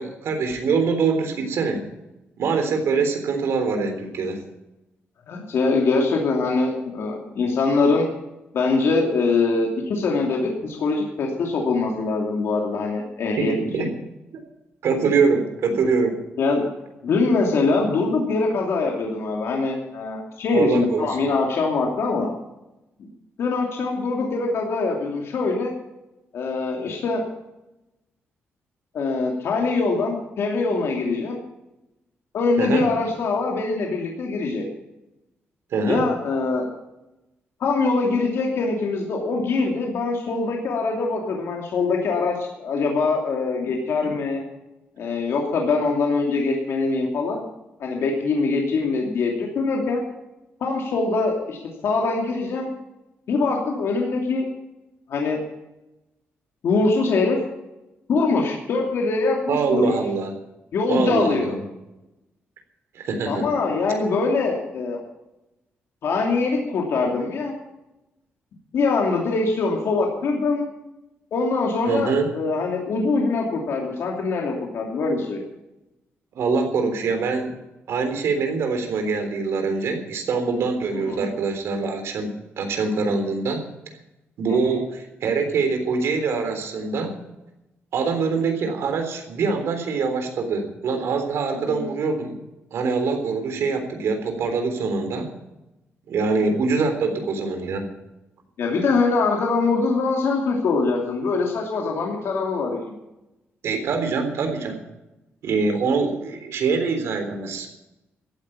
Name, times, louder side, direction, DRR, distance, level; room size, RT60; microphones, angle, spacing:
voice 1, 0.0-1.9 2.4-4.4 13.4-13.9 14.8-16.2 20.5-21.3 32.6-32.9 35.7-36.0 44.0-44.2 59.5-60.3 60.9-61.6 62.9-63.5 71.9-72.3 76.3-77.5 77.9-82.3 82.6-83.6 84.4-87.1 87.9-92.4 92.7-95.3 96.1-97.9 103.6-104.8 105.4-107.7, right 4 dB, 75° right, 5 dB, 3.6 m, -24 dB
voice 2, 5.3-8.1 8.5-13.5 13.8-13.9 16.4-16.7 17.0-22.3 23.4-25.7 26.3-27.2 28.9-31.4 32.3-34.6 35.9-36.7 37.6-44.4 45.0-47.5 47.8-50.0 50.6-52.7 53.3-54.4 55.1-55.4 56.6-57.4 58.1-60.0 60.7-61.5 63.3-65.0 66.0-67.5 68.7-70.7 71.3-75.4 80.9-81.3 91.7-91.9 98.6-102.9, left 3 dB, 70° left, 0 dB, 2.8 m, -23 dB
14.5 x 9.0 x 8.7 m, 0.97 s
cardioid pair, 100°, 4 cm